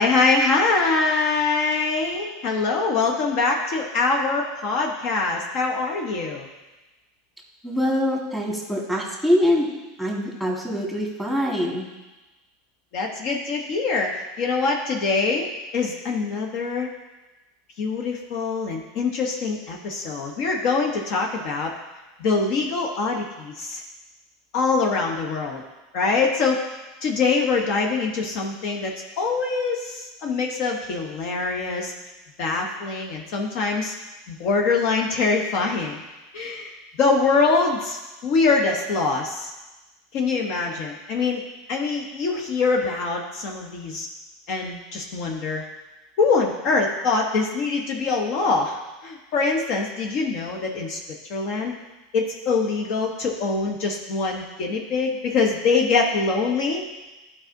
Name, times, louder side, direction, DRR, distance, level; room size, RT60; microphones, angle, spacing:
voice 1, 0.0-6.5 12.9-16.9 17.8-21.7 22.2-23.8 24.5-25.6 25.9-26.6 27.0-31.9 32.4-33.9 34.3-36.0 36.3-38.0 38.2-39.5 40.1-41.4 41.7-44.1 44.5-45.6 46.2-51.0 51.3-51.8 52.1-56.8, left 4 dB, 55° left, 1 dB, 0.9 m, -24 dB
voice 2, 7.6-9.7 10.0-11.9, equal, 5° left, -3 dB, 1.8 m, -24 dB
11.0 x 4.8 x 2.7 m, 1.1 s
hypercardioid pair, 100°, 0 cm